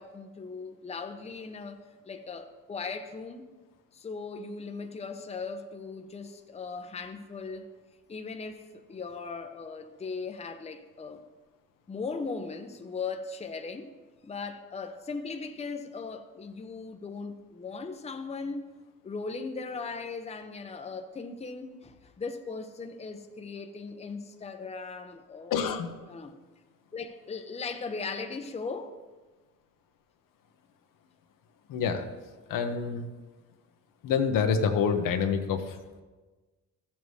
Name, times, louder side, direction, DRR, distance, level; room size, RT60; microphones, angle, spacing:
voice 1, 0.0-3.4 3.9-7.7 8.1-11.2 11.9-13.9 14.2-18.7 19.0-25.7 26.1-26.4 26.9-29.0, left 4 dB, 20° left, 0.7 m, -38 dB
voice 2, 25.5-26.0 31.7-32.1 32.5-33.1 34.0-36.0, left 6 dB, 75° left, 1.0 m, -27 dB
14.0 x 7.2 x 3.2 m
cardioid pair, 95°, 33 cm